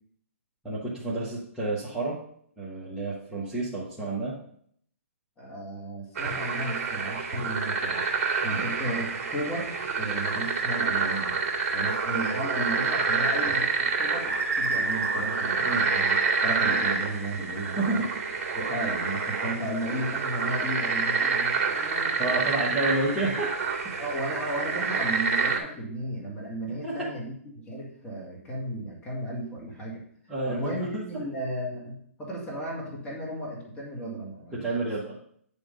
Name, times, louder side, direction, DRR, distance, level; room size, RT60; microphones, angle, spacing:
voice 1, 0.6-2.2 2.6-4.3 8.4-8.6 12.1-12.4 15.7-15.9 17.8-18.1 22.2-23.5 23.8-24.0 26.8-27.1 30.3-31.0 34.5-35.2, right 2 dB, 5° right, -8 dB, 1.4 m, -30 dB
voice 2, 5.4-8.0 8.4-11.4 11.7-18.0 18.5-22.6 24.0-30.0 30.5-34.9, right 1 dB, 15° left, -3 dB, 1.9 m, -34 dB
sound 1, 6.1-25.6, right 4 dB, 30° right, 2.2 m, -28 dB
sound 2, 14.2-17.1, right 3 dB, 55° right, 1.9 m, -31 dB
9.2 x 3.6 x 5.2 m, 0.64 s
hypercardioid pair, 145°, 8 cm